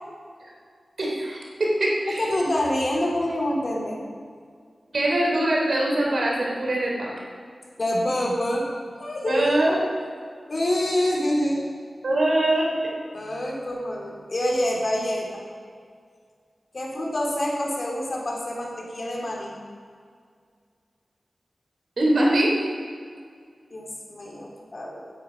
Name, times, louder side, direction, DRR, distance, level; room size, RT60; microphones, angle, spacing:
voice 1, 1.0-2.2 4.9-7.1 9.3-9.8 12.0-12.7 22.0-22.7, right 1 dB, 75° right, -2 dB, 3.7 m, -22 dB
voice 2, 2.1-4.1 7.8-8.7 9.0-9.6 10.5-11.7 13.1-15.4 16.7-19.6 23.7-25.1, left 1 dB, 50° left, -2 dB, 3.3 m, -26 dB
16.0 x 9.8 x 5.4 m, 2.1 s
wide cardioid pair, 60°, 0 cm